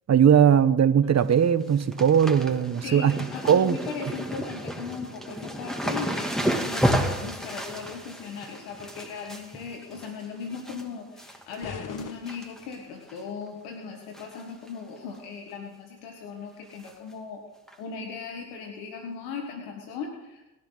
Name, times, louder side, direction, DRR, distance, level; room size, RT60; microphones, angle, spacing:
voice 1, 0.1-3.1 3.4-3.8, right 8 dB, 45° right, 12 dB, 1.2 m, -19 dB
sound 1, 1.0-1.3 1.6-10.8 11.2-11.6 11.9-12.7 13.1-13.2 14.1-14.4 14.7-14.8 15.1-15.2 16.8-16.9 17.7-17.8, equal, ahead, 2.7 m, -32 dB
voice 2, 2.8-17.4 17.8-20.4, left 5 dB, 90° left, 2 dB, 1.7 m, -38 dB
sound 2, 11.6-13.1, left 6 dB, 55° left, 1.5 m, -41 dB
24.5 x 11.5 x 4.0 m, 0.98 s
supercardioid pair, 55°, 37 cm